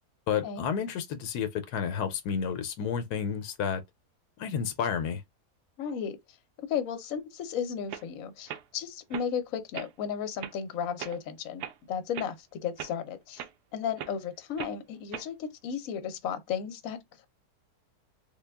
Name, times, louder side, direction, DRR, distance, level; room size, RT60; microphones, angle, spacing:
voice 1, 0.3-3.8 4.4-5.2, left 7 dB, 90° left, 1.2 m, -31 dB
voice 2, 5.8-6.2 6.7-13.4 13.7-17.3, left 7 dB, 65° left, 1.1 m, -34 dB
sound 1, 7.4-7.5 7.9-8.1 8.5-8.6 9.1-9.3 9.7-9.9 10.4-10.5 11.0-11.2 11.6-11.8 12.1-12.3 12.8-12.9 13.4-13.5 14.0-14.2 14.6-14.8 15.1-15.3, right 10 dB, 85° right, 1.2 m, -39 dB
3.6 x 2.2 x 3.4 m
omnidirectional pair, 1.7 m